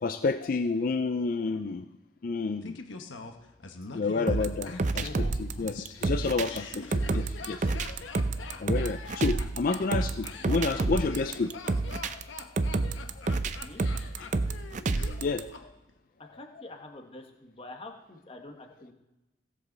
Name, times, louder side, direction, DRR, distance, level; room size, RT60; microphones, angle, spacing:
voice 1, 0.0-1.8 2.2-2.8 3.9-8.0 8.6-11.5 12.1-12.2 15.2-15.7, left 4 dB, 45° left, 9 dB, 0.4 m, -30 dB
Laughter, 2.6-15.6 15.9-16.0, left 4 dB, 80° left, 1.0 m, -44 dB
sound 1, 4.3-15.4, right 3 dB, 40° right, 0.5 m, -29 dB
voice 2, 10.4-10.9 13.6-13.8 16.2-18.9, left 2 dB, 30° left, 4 dB, 1.2 m, -46 dB
17.0 x 7.6 x 4.0 m, 1.0 s
head